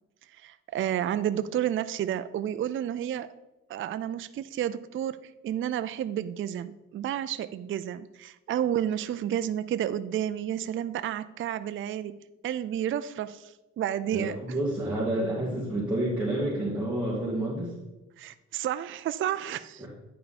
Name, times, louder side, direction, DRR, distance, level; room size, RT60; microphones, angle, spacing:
voice 1, 0.4-3.3 3.7-5.2 5.4-12.1 12.4-14.4 18.2-19.9, right 10 dB, 45° right, 12 dB, 0.4 m, -31 dB
voice 2, 14.1-17.7 19.8-19.9, right 1 dB, 5° right, -7 dB, 2.3 m, -29 dB
9.6 x 5.4 x 4.2 m, 1.0 s
cardioid pair, 90°, 30 cm